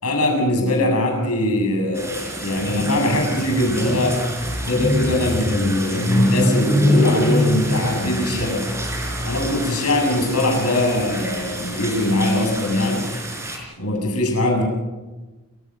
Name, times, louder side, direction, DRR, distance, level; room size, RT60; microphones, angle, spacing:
voice 1, 0.0-4.2 4.6-8.8 9.2-13.1 13.8-14.6, left 1 dB, 80° left, 2 dB, 7.7 m, -21 dB
sound 1, 1.9-13.6, equal, 15° right, 4.7 m, -25 dB
29.0 x 16.5 x 6.8 m, 1.2 s
head